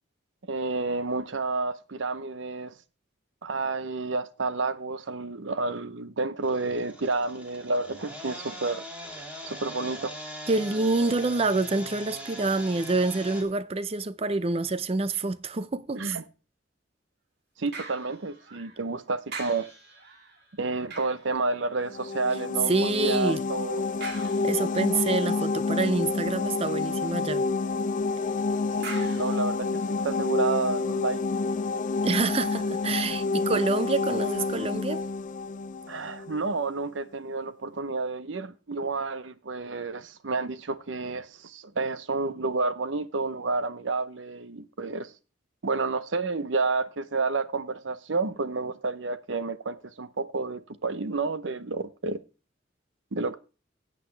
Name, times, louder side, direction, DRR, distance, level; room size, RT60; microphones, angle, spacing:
voice 1, 0.4-2.7 3.4-8.8 9.4-10.1 15.9-16.2 17.6-19.7 20.6-22.7 23.0-23.8 28.8-31.2 35.9-45.1 45.6-52.2 53.1-53.4, right 3 dB, 85° right, 0.8 m, -30 dB
sound 1, 6.4-13.4, equal, 10° right, 2.4 m, -41 dB
voice 2, 10.5-16.2 22.7-23.4 24.4-27.5 32.0-35.0, right 3 dB, 30° right, 0.5 m, -27 dB
sound 2, 17.7-18.9 19.3-22.1 24.0-25.0 28.8-30.3 30.9-31.0, right 4 dB, 55° right, 2.3 m, -43 dB
sound 3, 21.8-36.5, left 3 dB, 45° left, 0.4 m, -28 dB
14.0 x 8.4 x 3.3 m
head